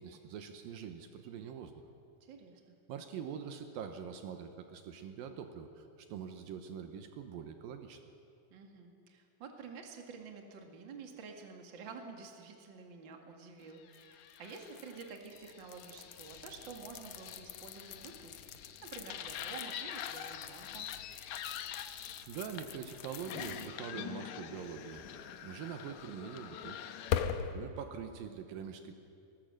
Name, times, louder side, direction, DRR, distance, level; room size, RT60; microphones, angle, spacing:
voice 1, 0.0-1.7 2.9-8.0 21.9-26.8 27.5-29.0, right 7 dB, 75° right, 7 dB, 2.7 m, -44 dB
voice 2, 2.2-2.8 8.5-20.9, right 5 dB, 40° right, 3 dB, 2.2 m, -50 dB
sound 1, 13.9-27.5, left 9 dB, 70° left, 1.9 m, -42 dB
21.0 x 18.5 x 7.7 m, 2.5 s
omnidirectional pair, 4.2 m